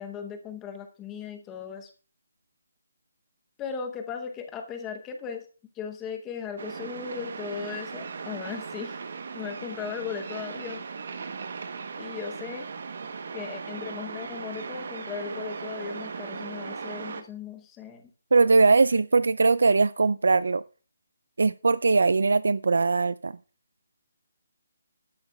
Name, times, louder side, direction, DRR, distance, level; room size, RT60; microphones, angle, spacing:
voice 1, 0.0-1.9 3.6-5.5 5.8-9.0 9.3-10.9 12.0-12.7 13.3-18.1, left 6 dB, 10° left, 0.8 m, -37 dB
sound 1, 6.6-17.2, right 5 dB, 45° right, 0.9 m, -38 dB
voice 2, 18.3-20.6 21.4-23.4, right 3 dB, 75° right, 0.4 m, -21 dB
12.5 x 10.5 x 2.3 m
hypercardioid pair, 180°, 0 cm